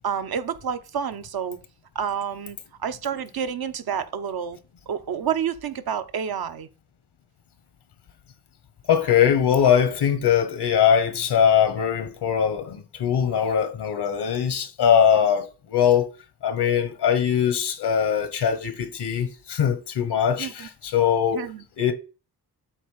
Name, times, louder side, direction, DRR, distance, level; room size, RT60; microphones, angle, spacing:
voice 1, 0.0-1.6 1.9-4.6 4.9-6.7 20.4-20.7 21.3-21.6, right 8 dB, 65° right, 0.9 m, -29 dB
voice 2, 8.9-16.1 16.4-21.4 21.8-21.9, left 8 dB, 80° left, 1.3 m, -21 dB
8.3 x 3.1 x 5.8 m
cardioid pair, 50°, 39 cm